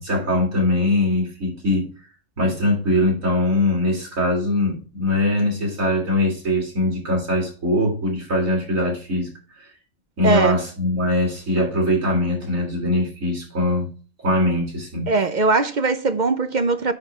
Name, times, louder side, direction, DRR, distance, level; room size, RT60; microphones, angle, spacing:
voice 1, 0.0-1.9 2.4-9.7 10.2-13.9 14.2-15.1, left 1 dB, 80° right, 3.8 m, -22 dB
voice 2, 10.2-10.6 15.1-16.9, right 3 dB, 45° right, 0.7 m, -20 dB
9.8 x 3.9 x 5.4 m
omnidirectional pair, 1.4 m